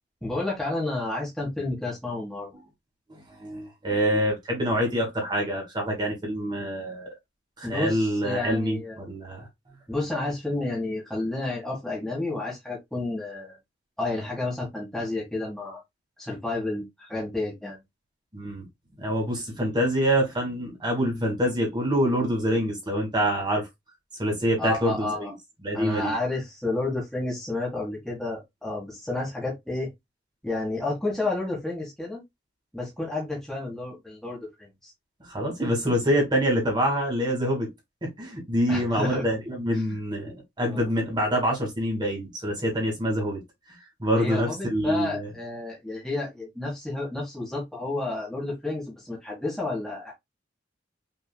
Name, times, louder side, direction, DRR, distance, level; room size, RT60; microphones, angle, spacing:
voice 1, 0.2-2.5 7.6-9.0 9.9-13.6 14.0-15.8 16.2-17.8 24.6-25.3 25.7-29.9 30.4-32.2 32.7-34.9 38.7-39.2 39.9-40.0 40.6-40.9 44.2-50.2, left 2 dB, 5° left, 1.9 m, -31 dB
voice 2, 3.1-7.1 7.6-9.5 18.3-18.7 19.0-23.7 24.2-25.3 25.6-26.1 35.2-37.7 38.0-43.4 44.0-45.3, equal, 25° right, 2.2 m, -26 dB
6.0 x 3.6 x 2.3 m
head